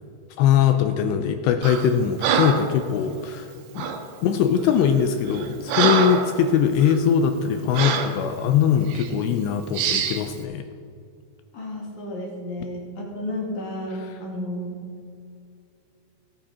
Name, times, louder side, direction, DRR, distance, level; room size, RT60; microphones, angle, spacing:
voice 1, 0.4-3.9 4.2-10.6, left 8 dB, 85° left, 7 dB, 2.6 m, -21 dB
Breathing, 1.6-1.9 2.2-2.7 3.8-4.0 4.7-4.9 5.3-6.3 6.8-7.0 7.7-8.2 8.9-9.1 9.7-10.2, right 7 dB, 75° right, 2.7 m, -24 dB
voice 2, 11.5-14.8, left 1 dB, 50° left, -3 dB, 3.0 m, -32 dB
18.0 x 8.5 x 4.3 m, 2.4 s
omnidirectional pair, 5.4 m